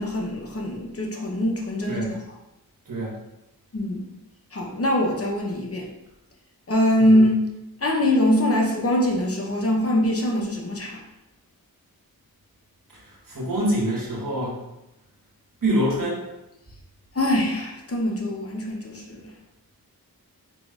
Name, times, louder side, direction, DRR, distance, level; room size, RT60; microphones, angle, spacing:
voice 1, 0.0-2.2 3.7-4.1 4.5-5.9 6.7-7.5 7.8-11.0 17.1-19.3, left 1 dB, 40° left, -1 dB, 0.8 m, -23 dB
voice 2, 12.9-14.6 15.6-16.2, right 1 dB, 60° right, -4 dB, 1.4 m, -25 dB
3.9 x 3.0 x 2.4 m, 0.91 s
wide cardioid pair, 55°, 37 cm